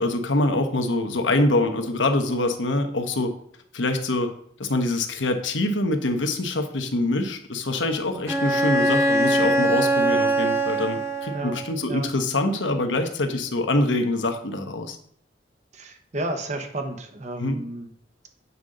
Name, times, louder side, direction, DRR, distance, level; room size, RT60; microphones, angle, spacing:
voice 1, 0.0-3.3 3.7-4.3 4.6-15.0 17.4-17.6, left 2 dB, 85° left, 5 dB, 1.0 m, -24 dB
Bowed string instrument, 8.3-11.8, right 1 dB, 15° right, 1.1 m, -22 dB
voice 2, 15.7-17.9, right 2 dB, 40° right, 5 dB, 1.0 m, -32 dB
8.2 x 5.1 x 3.8 m, 0.66 s
head